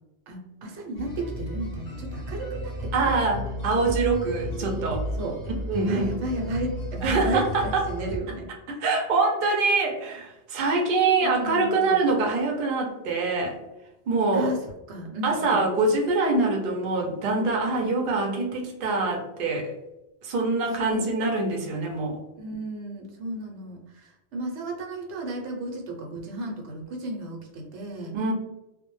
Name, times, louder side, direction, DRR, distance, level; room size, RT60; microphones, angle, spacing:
voice 1, 0.3-3.2 4.3-4.7 5.2-5.4 5.9-8.8 11.2-12.0 14.3-15.6 20.8-21.1 22.4-28.1, right 1 dB, 85° right, 0 dB, 0.9 m, -34 dB
sound 1, 0.9-8.2, equal, 50° left, 0.5 m, -33 dB
voice 2, 2.9-5.0 5.7-6.1 7.0-7.8 8.8-13.6 14.1-14.5 15.2-19.7 20.2-22.2 28.1-28.3, right 3 dB, 60° right, 0 dB, 0.7 m, -24 dB
2.1 x 2.1 x 3.0 m, 0.96 s
omnidirectional pair, 1.1 m